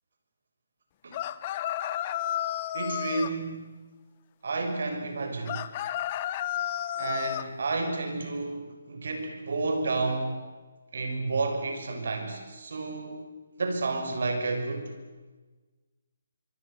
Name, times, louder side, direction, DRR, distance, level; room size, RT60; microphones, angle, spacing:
sound 1, 1.1-3.3 5.4-7.5, left 12 dB, 30° left, 1.1 m, -32 dB
voice 1, 2.7-3.7 4.4-5.6 7.0-10.4 10.9-13.2 13.6-14.9, right 3 dB, 65° right, 6 dB, 6.5 m, -31 dB
25.5 x 24.5 x 8.2 m, 1.3 s
hypercardioid pair, 155°, 0 cm